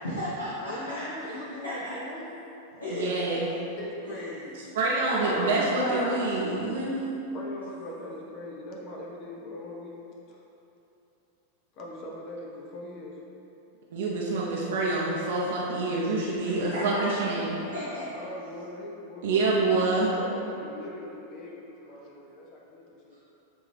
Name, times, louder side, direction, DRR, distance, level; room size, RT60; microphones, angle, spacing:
voice 1, 0.0-1.4 1.6-1.7 2.7-3.1 4.1-4.3 5.0-6.3 6.5-6.6 16.4-17.1 17.7-18.3 23.1-23.2, left 1 dB, 75° left, -11 dB, 1.4 m, -34 dB
voice 2, 0.6-2.4 3.8-4.6 7.3-10.0 10.3-10.4 11.8-13.2 18.0-23.2, left 1 dB, 40° left, -2 dB, 0.8 m, -41 dB
voice 3, 2.9-3.6 4.7-7.1 13.9-17.6 19.2-20.1, right 3 dB, 55° right, -4 dB, 0.7 m, -27 dB
8.4 x 3.6 x 3.3 m, 3.0 s
figure-of-eight pair, 90°, 0 cm